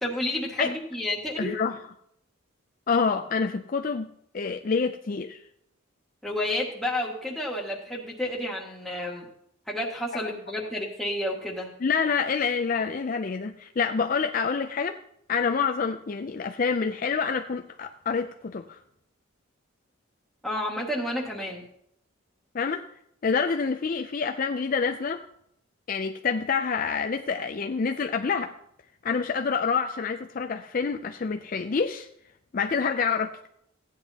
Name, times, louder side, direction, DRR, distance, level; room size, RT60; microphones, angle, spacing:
voice 1, 0.0-1.5 6.2-9.3 9.7-11.7 20.4-21.6, left 1 dB, ahead, 1.8 m, -30 dB
voice 2, 1.4-1.8 2.9-5.4 11.8-15.0 15.3-18.8 22.5-22.9 23.2-25.2 25.9-28.5 29.0-32.1 32.5-33.5, left 5 dB, 40° left, 0.4 m, -27 dB
16.0 x 9.7 x 2.9 m
head